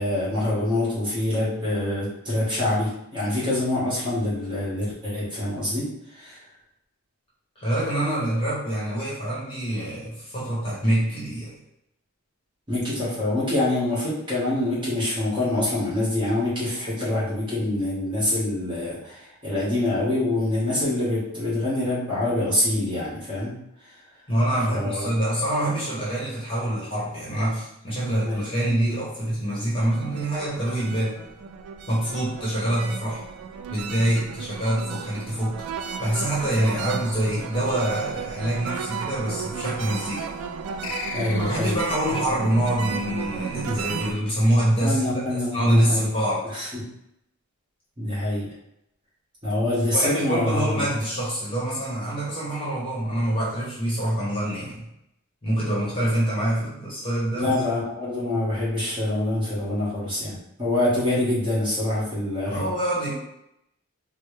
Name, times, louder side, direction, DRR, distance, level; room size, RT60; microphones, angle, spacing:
voice 1, 0.0-5.9 6.1-6.4 12.7-23.5 23.8-23.9 24.7-25.2 28.2-28.5 41.1-41.8 43.7-43.8 44.8-46.1 46.5-46.8 48.0-48.5 49.4-50.8 57.3-62.7, left 1 dB, 20° right, -8 dB, 1.5 m, -25 dB
voice 2, 7.6-11.5 24.3-31.2 31.9-33.2 33.7-35.6 36.0-40.3 41.4-45.0 45.5-46.5 49.9-54.8 55.4-57.5 62.5-63.1, right 1 dB, 25° left, -7 dB, 1.1 m, -25 dB
sound 1, 29.7-44.1, right 6 dB, 75° right, 0.3 m, -34 dB
sound 2, 40.8-42.0, left 4 dB, 60° left, 0.5 m, -35 dB
4.3 x 2.1 x 3.3 m, 0.82 s
head